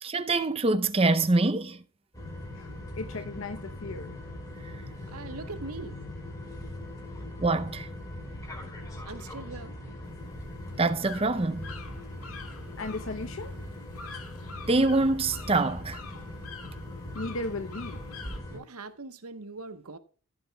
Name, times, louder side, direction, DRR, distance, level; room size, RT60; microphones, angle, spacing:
voice 1, 0.0-1.8 7.4-7.9 10.8-11.7 14.7-16.0, right 2 dB, 25° right, 0.6 m, -25 dB
sound 1, 2.1-18.6, left 1 dB, 15° left, 4.7 m, -40 dB
voice 2, 3.0-4.2 12.8-13.5 17.1-18.0, left 2 dB, 65° left, 0.8 m, -36 dB
voice 3, 5.1-6.0 9.0-9.7 18.5-20.0, right 3 dB, 85° right, 1.1 m, -41 dB
sound 2, 10.0-18.4, left 4 dB, 80° left, 1.9 m, -47 dB
15.5 x 8.8 x 2.3 m
head